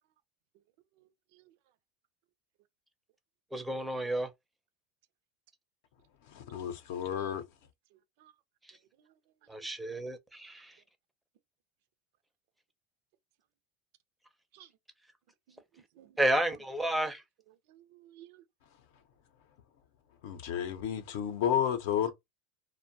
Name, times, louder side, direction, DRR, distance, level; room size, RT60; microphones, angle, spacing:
voice 1, 1.0-1.5 7.2-7.3 7.9-8.3 9.0-9.2 9.5-9.7 14.5-14.7 15.5-16.2 17.7-18.4, right 12 dB, 65° right, 0.4 m, -58 dB
voice 2, 3.5-4.3 8.7-8.8 9.5-10.8 16.2-17.2, right 1 dB, 5° right, 0.5 m, -31 dB
voice 3, 6.3-7.4 20.2-22.1, left 9 dB, 75° left, 0.6 m, -31 dB
2.5 x 2.1 x 2.6 m
supercardioid pair, 150°, 0 cm